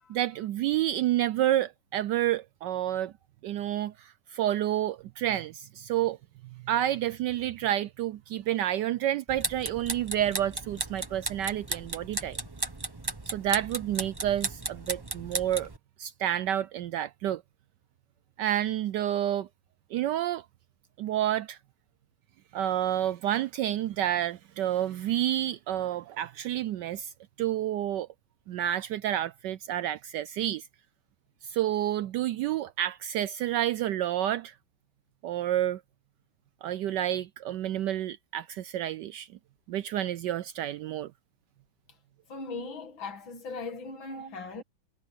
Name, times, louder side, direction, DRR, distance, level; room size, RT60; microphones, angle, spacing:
voice 1, 0.1-3.1 3.4-6.2 6.6-12.4 13.3-15.7 16.0-17.4 18.4-19.5 19.9-20.4 21.0-21.6 22.5-27.1 27.4-28.1 28.5-30.6 31.4-34.5 35.2-35.8 36.6-39.3 39.7-41.1 44.1-44.3, right 12 dB, 75° right, 1.0 m, -29 dB
sound 1, 9.3-15.8, right 2 dB, 15° right, 0.8 m, -35 dB
voice 2, 42.3-44.6, left 3 dB, 70° left, 2.7 m, -39 dB
omnidirectional pair, 2.2 m